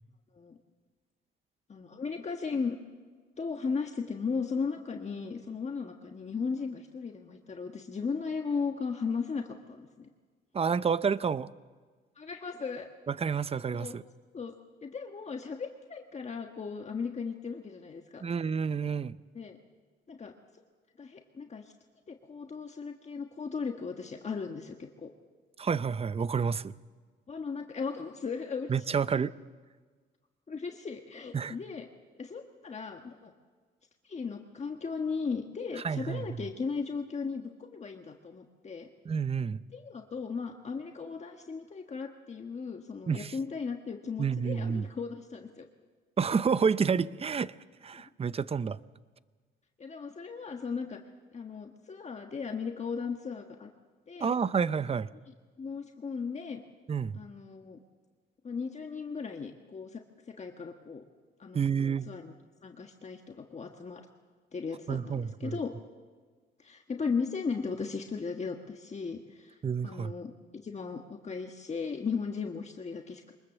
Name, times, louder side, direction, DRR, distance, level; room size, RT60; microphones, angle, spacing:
voice 1, 1.7-2.8 3.4-10.1 12.2-12.9 13.7-14.0 14.3-14.5 14.8-18.2 19.3-19.6 20.1-20.3 21.0-21.7 22.1-25.1 27.3-28.9 30.5-31.9 32.2-33.3 34.0-38.9 39.7-45.7 49.8-51.0 51.3-53.7 54.1-54.3 55.6-56.6 57.1-57.8 58.4-60.0 60.3-61.0 61.4-62.3 62.6-64.0 64.5-65.7 66.6-69.5 69.8-70.3 70.6-73.3, left 5 dB, 35° left, 1.5 m, -36 dB
voice 2, 10.5-11.5 13.1-14.0 18.2-19.2 25.6-26.7 28.7-29.3 31.3-31.5 35.8-36.4 39.0-39.6 43.1-43.3 44.2-44.9 46.2-47.5 47.8-48.8 54.2-55.1 56.9-57.2 61.5-62.1 64.9-65.6 69.6-70.1, right 6 dB, 30° right, 0.7 m, -29 dB
23.5 x 21.0 x 7.3 m
cardioid pair, 90°, 20 cm